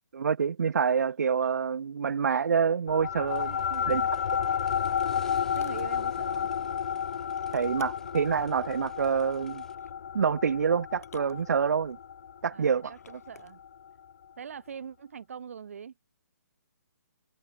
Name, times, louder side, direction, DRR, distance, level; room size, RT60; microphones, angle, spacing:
voice 1, 0.1-4.0 7.5-9.6 10.1-12.0 12.4-12.9, right 6 dB, 70° right, 0.8 m, -27 dB
sound 1, 2.9-13.7, left 8 dB, 40° left, 0.4 m, -32 dB
sound 2, 3.3-9.7, left 5 dB, 5° left, 3.7 m, -59 dB
voice 2, 3.7-4.1 5.6-6.5 12.5-13.6 14.4-15.9, right 7 dB, 50° right, 2.0 m, -42 dB
sound 3, 5.2-5.9 7.4-8.2 9.5-10.0 10.9-11.9 12.8-13.5, left 6 dB, 60° left, 2.9 m, -55 dB
hypercardioid pair, 175°, 9 cm